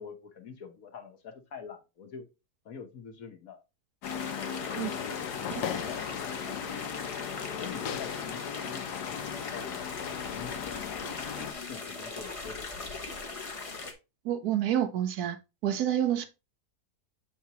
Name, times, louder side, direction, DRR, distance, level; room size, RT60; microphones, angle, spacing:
voice 1, 0.0-2.3 2.6-3.6 4.7-7.1 7.6-9.9 10.3-12.7, left 6 dB, 60° left, 1.4 m, -46 dB
sound 1, 4.0-11.5, left 8 dB, 80° left, 1.2 m, -37 dB
sound 2, 4.0-13.9, left 3 dB, 30° left, 0.6 m, -40 dB
voice 2, 14.2-15.4 15.6-16.3, right 11 dB, 70° right, 1.2 m, -28 dB
6.9 x 4.6 x 2.9 m
omnidirectional pair, 1.7 m